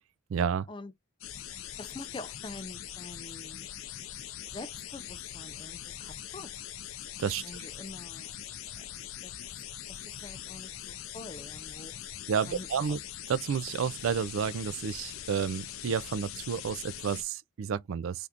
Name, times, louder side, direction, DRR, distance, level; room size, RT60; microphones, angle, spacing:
voice 1, 0.3-0.7 7.2-7.7 12.3-13.0 13.3-18.3, right 7 dB, 75° right, 0.3 m, -31 dB
sound 1, 1.2-17.2, left 11 dB, 80° left, 0.5 m, -42 dB
voice 2, 1.8-3.7 4.5-6.5 7.4-8.4 8.8-8.9 9.2-11.9 12.5-13.0, left 2 dB, 25° left, 0.3 m, -46 dB
3.5 x 2.4 x 2.7 m
head